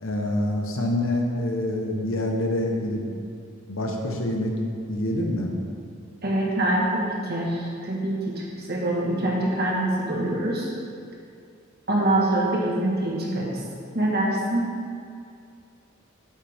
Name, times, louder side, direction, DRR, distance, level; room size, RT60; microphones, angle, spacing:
voice 1, 0.0-3.1 3.7-4.5 4.9-5.5, left 1 dB, 90° left, 1 dB, 1.2 m, -26 dB
voice 2, 6.2-10.7 11.9-13.6 13.9-14.7, right 1 dB, 55° right, -3 dB, 1.8 m, -25 dB
8.7 x 8.2 x 3.6 m, 2.4 s
head